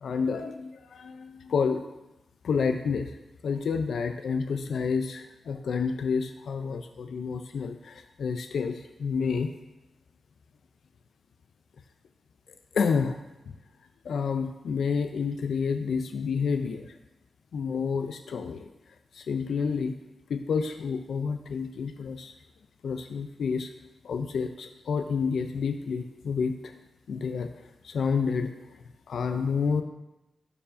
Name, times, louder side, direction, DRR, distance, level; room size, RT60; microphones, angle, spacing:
voice 1, 0.0-1.8 2.4-3.2 3.4-9.5 12.7-13.2 13.4-13.5 14.0-17.0 17.5-18.7 19.1-20.0 20.3-22.3 22.8-23.7 24.0-26.7 27.1-29.8, left 5 dB, 90° left, 7 dB, 0.3 m, -29 dB
11.5 x 4.7 x 2.5 m, 0.99 s
wide cardioid pair, 160°, 0 cm